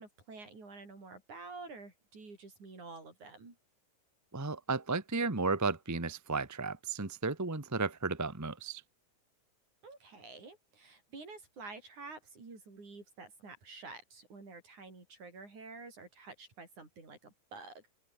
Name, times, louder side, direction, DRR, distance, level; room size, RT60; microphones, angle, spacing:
voice 1, 0.0-3.6 9.8-17.8, right 3 dB, 65° right, 8.7 m, -49 dB
voice 2, 4.3-8.8, right 3 dB, 25° right, 0.3 m, -34 dB
open air
omnidirectional pair, 3.7 m